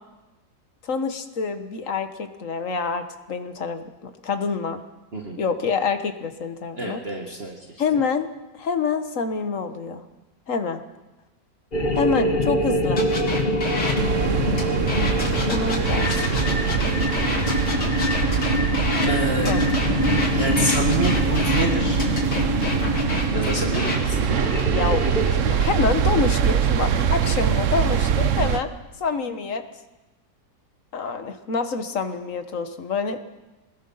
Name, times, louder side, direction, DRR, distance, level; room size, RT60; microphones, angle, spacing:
voice 1, 0.8-4.8 5.4-7.0 7.8-8.3 8.6-10.0 10.5-10.8 11.9-13.0 15.5-16.1 19.4-19.6 24.7-28.7 29.0-29.6 30.9-33.2, left 5 dB, 50° left, 8 dB, 1.6 m, -26 dB
voice 2, 6.8-7.6 19.0-19.8 20.3-22.0 23.3-24.2, right 2 dB, 35° right, 0 dB, 1.9 m, -28 dB
sound 1, 11.7-25.3, left 1 dB, 30° left, 1.3 m, -25 dB
sound 2, 13.0-14.0 14.5-19.1 19.4-21.7 22.0-24.0 24.5-24.8, left 2 dB, 65° left, 3.4 m, -29 dB
sound 3, 14.0-28.6, right 8 dB, 55° right, 1.0 m, -24 dB
24.0 x 20.0 x 5.7 m, 1.1 s
omnidirectional pair, 1.9 m